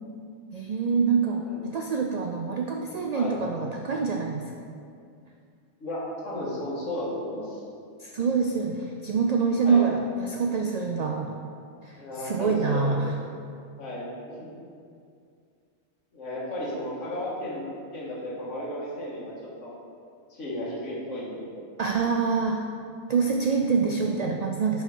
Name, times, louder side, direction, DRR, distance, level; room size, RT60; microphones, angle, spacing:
voice 1, 0.5-4.5 8.0-11.3 11.8-13.1 21.8-22.6 23.1-24.8, right 5 dB, 85° right, 2 dB, 0.3 m, -26 dB
voice 2, 5.8-7.6 9.6-9.9 11.9-13.1 13.8-14.1 14.4-14.5 16.1-19.3 19.6-19.7 20.3-21.4, left 1 dB, 80° left, -6 dB, 1.9 m, -34 dB
5.7 x 4.8 x 5.3 m, 2.3 s
omnidirectional pair, 1.3 m